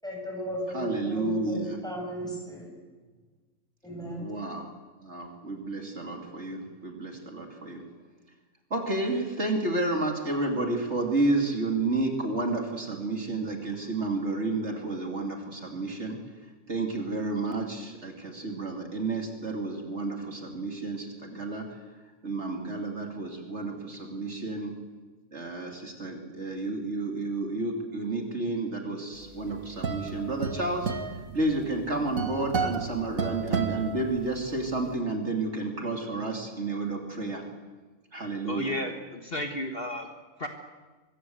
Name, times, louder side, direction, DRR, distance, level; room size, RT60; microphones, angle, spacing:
voice 1, 0.0-2.7 3.8-4.3, equal, 5° left, 0 dB, 7.7 m, -35 dB
voice 2, 0.7-1.8 4.2-4.7 5.0-7.8 8.7-16.2 16.7-21.8 22.2-24.7 25.3-30.9 31.3-37.4 38.1-38.8, right 2 dB, 55° right, 2 dB, 3.2 m, -31 dB
sound 1, 29.2-34.7, right 5 dB, 85° right, 2.3 m, -32 dB
voice 3, 38.4-40.1 40.4-40.5, left 1 dB, 45° left, 4 dB, 1.8 m, -33 dB
24.5 x 22.5 x 8.0 m, 1.3 s
omnidirectional pair, 1.4 m